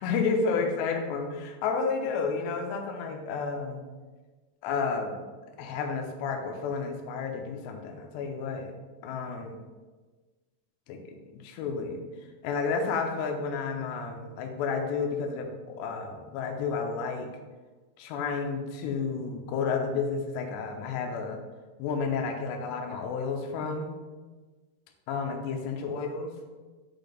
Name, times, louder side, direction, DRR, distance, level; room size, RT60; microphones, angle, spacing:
voice 1, 0.0-3.8 4.6-5.3 5.6-8.7 9.0-9.6 10.9-12.0 12.4-17.3 18.0-21.4 21.8-23.9 25.1-26.3, left 5 dB, 80° left, 3 dB, 2.6 m, -31 dB
9.0 x 4.1 x 3.4 m, 1.3 s
omnidirectional pair, 5.4 m